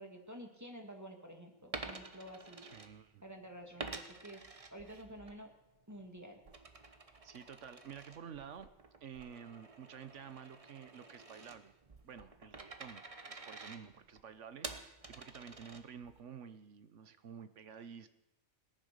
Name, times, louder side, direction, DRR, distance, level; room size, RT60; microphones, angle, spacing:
voice 1, 0.0-2.7 3.2-4.4 4.7-5.5 5.9-6.4, equal, 10° right, 3 dB, 2.0 m, -50 dB
Coin (dropping), 1.6-3.3 3.8-5.4 5.8-16.2, right 3 dB, 30° right, 1.0 m, -49 dB
voice 2, 2.6-3.2 6.8-6.9 7.2-8.7 9.0-11.7 12.0-13.0 13.3-18.1, right 7 dB, 60° right, 12 dB, 1.2 m, -51 dB
18.5 x 10.5 x 6.7 m, 0.91 s
omnidirectional pair, 1.4 m